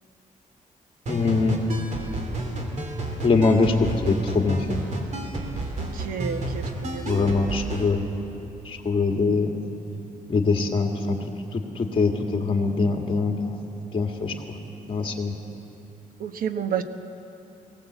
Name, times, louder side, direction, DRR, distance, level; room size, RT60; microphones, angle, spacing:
voice 1, 1.1-1.6 3.2-4.8 7.0-8.0 8.6-9.5 10.3-13.6 13.9-14.6 14.9-15.3, left 3 dB, 35° left, 2 dB, 2.0 m, -23 dB
sound 1, 1.1-7.9, right 1 dB, 55° right, 3.0 m, -31 dB
voice 2, 5.8-7.1 16.2-16.8, right 8 dB, 80° right, 9 dB, 1.0 m, -30 dB
18.5 x 18.0 x 8.0 m, 3.0 s
wide cardioid pair, 140°, 15 cm